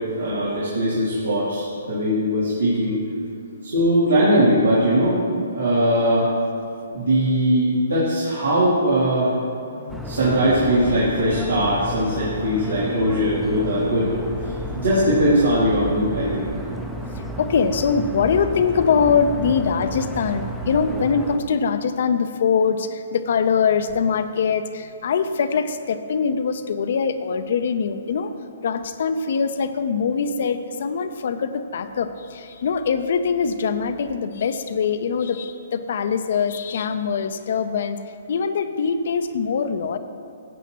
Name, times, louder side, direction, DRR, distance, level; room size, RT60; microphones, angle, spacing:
voice 1, 0.0-3.0 3.5-6.3 6.9-9.3 10.0-14.1 14.7-16.5, equal, 85° right, -9 dB, 2.6 m, -20 dB
voice 2, 9.7-10.4 11.5-12.1 17.0-28.3 28.6-38.0 38.3-40.0, left 6 dB, 60° left, 10 dB, 0.6 m, -23 dB
sound 1, 9.9-21.4, right 1 dB, 5° right, 0.6 m, -32 dB
14.5 x 8.0 x 3.0 m, 2.5 s
hypercardioid pair, 135°, 0 cm